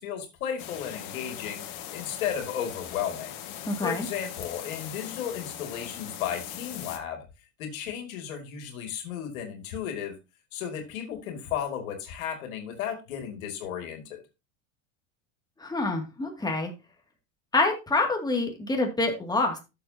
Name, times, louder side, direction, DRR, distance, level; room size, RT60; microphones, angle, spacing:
voice 1, 0.0-3.3 3.8-7.2 7.6-10.2 10.5-14.2, left 9 dB, 80° left, 5 dB, 2.5 m, -34 dB
sound 1, 0.6-7.0, left 10 dB, 55° left, 1.8 m, -40 dB
voice 2, 3.7-4.1 15.6-16.7 17.5-19.6, left 2 dB, 10° left, 2 dB, 2.3 m, -26 dB
12.5 x 6.9 x 2.8 m, 0.26 s
supercardioid pair, 105°, 41 cm